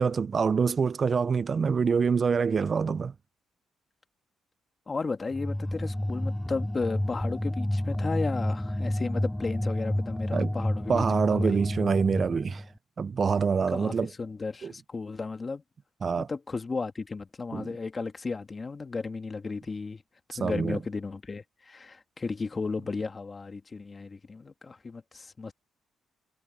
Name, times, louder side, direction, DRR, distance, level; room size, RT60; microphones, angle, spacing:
voice 1, 0.0-3.1 10.3-10.5 10.9-12.6 13.0-14.1 14.6-14.7 16.0-16.3 17.5-17.7 20.4-20.8, right 5 dB, 40° right, 0.4 m, -25 dB
voice 2, 4.9-11.1 11.3-11.6 13.7-15.6 16.2-20.0 20.3-25.5, left 4 dB, 30° left, 1.9 m, -34 dB
sound 1, 5.3-12.7, left 1 dB, 5° left, 2.8 m, -30 dB
cardioid pair, 90°, 0 cm